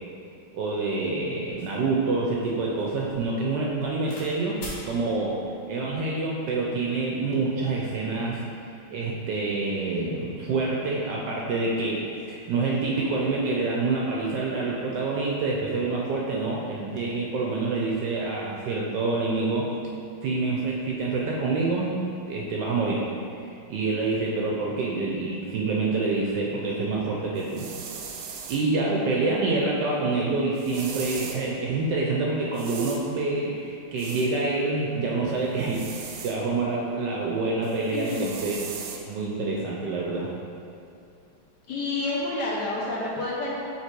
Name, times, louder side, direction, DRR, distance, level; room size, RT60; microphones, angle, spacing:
voice 1, 0.5-5.4 5.7-8.4 8.9-19.7 20.2-21.9 22.3-23.0 23.7-27.7 28.5-38.6 38.9-40.3, right 3 dB, 70° right, -3 dB, 1.1 m, -27 dB
sound 1, 1.5-4.3 4.6-4.9 5.7-6.1, left 1 dB, 85° left, 2.3 m, -44 dB
sound 2, 27.4-28.7 30.6-31.4 32.5-33.0 34.0-34.3 35.6-36.4 37.6-39.0, right 6 dB, 90° right, 1.5 m, -39 dB
voice 2, 37.9-38.3 41.7-43.5, left 2 dB, 65° left, -4 dB, 1.1 m, -29 dB
5.8 x 3.7 x 4.4 m, 2.6 s
omnidirectional pair, 2.3 m